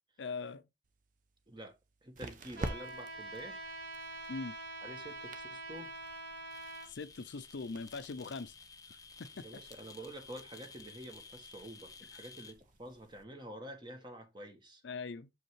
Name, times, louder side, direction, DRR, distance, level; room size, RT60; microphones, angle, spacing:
voice 1, 0.2-0.6 4.3-4.5 6.9-8.5 9.2-9.4 14.8-15.3, left 4 dB, 65° left, 0.5 m, -41 dB
sound 1, 0.8-13.2, right 2 dB, 45° right, 0.8 m, -50 dB
voice 2, 1.5-3.6 4.8-5.9 9.4-14.8, right 1 dB, 25° right, 1.3 m, -48 dB
Trumpet, 2.6-6.9, right 2 dB, 70° right, 3.1 m, -45 dB
sound 2, 6.5-12.5, left 5 dB, 20° left, 0.7 m, -54 dB
6.5 x 5.2 x 3.2 m
head